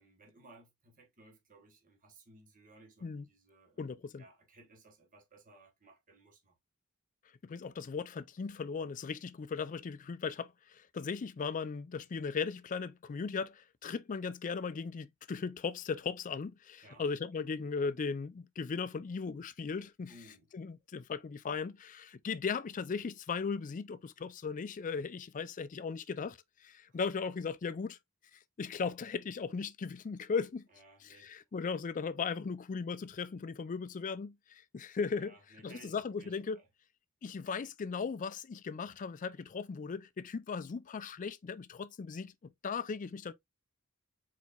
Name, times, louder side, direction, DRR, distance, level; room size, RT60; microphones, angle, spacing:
voice 1, 0.0-6.6 16.8-17.1 20.1-20.5 26.9-27.0 30.7-31.3 35.1-36.7, right 1 dB, 35° right, 1.2 m, -59 dB
voice 2, 3.8-4.2 7.4-20.1 20.5-28.0 28.3-30.7 31.2-35.3 35.6-36.6 37.2-43.3, left 5 dB, 35° left, 0.4 m, -37 dB
4.4 x 4.1 x 2.3 m
head